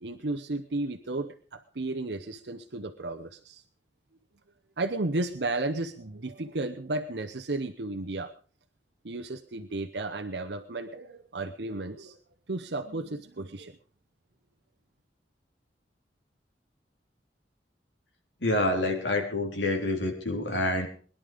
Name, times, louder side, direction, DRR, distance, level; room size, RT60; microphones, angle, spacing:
voice 1, 0.0-3.6 4.8-8.3 9.0-12.2 12.5-13.7, right 2 dB, 65° right, 5 dB, 0.9 m, -33 dB
voice 2, 18.4-20.9, left 1 dB, 90° left, 2 dB, 3.9 m, -27 dB
21.5 x 11.0 x 5.1 m, 0.42 s
head